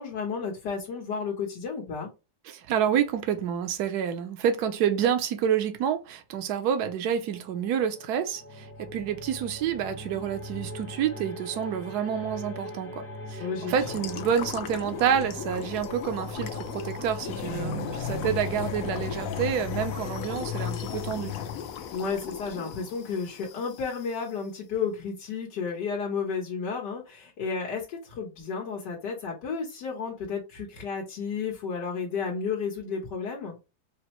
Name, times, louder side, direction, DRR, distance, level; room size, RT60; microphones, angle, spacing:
voice 1, 0.0-2.1 13.4-13.7 21.9-33.6, left 5 dB, 80° left, 1.7 m, -32 dB
voice 2, 2.4-13.0 13.3-21.3, right 8 dB, 70° right, 1.2 m, -28 dB
sound 1, 6.7-21.4, left 1 dB, 20° left, 0.3 m, -42 dB
sound 2, 13.7-24.1, left 8 dB, 65° left, 0.9 m, -35 dB
5.1 x 2.1 x 2.9 m
omnidirectional pair, 1.8 m